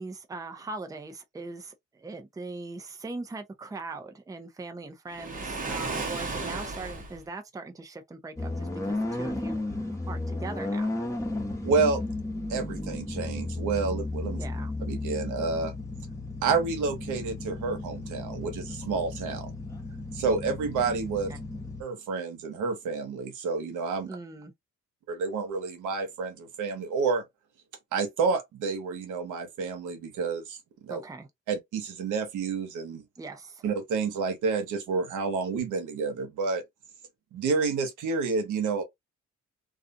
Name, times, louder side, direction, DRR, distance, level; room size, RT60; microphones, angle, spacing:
voice 1, 0.0-10.9 14.4-14.7 21.3-21.4 24.0-24.5 30.9-31.3 33.2-33.6, right 3 dB, 10° right, 0.5 m, -40 dB
Waves surf, 5.1-7.2, right 3 dB, 25° right, 0.9 m, -34 dB
sound 1, 8.4-21.8, left 2 dB, 10° left, 1.0 m, -34 dB
voice 2, 11.6-12.0 12.5-14.4 14.9-15.7 16.4-19.6 20.1-21.3 21.8-24.1 25.1-27.2 27.9-31.0 31.5-33.0 33.6-36.6 37.3-38.8, right 4 dB, 80° right, 1.0 m, -29 dB
2.4 x 2.4 x 2.5 m
cardioid pair, 90°, 30 cm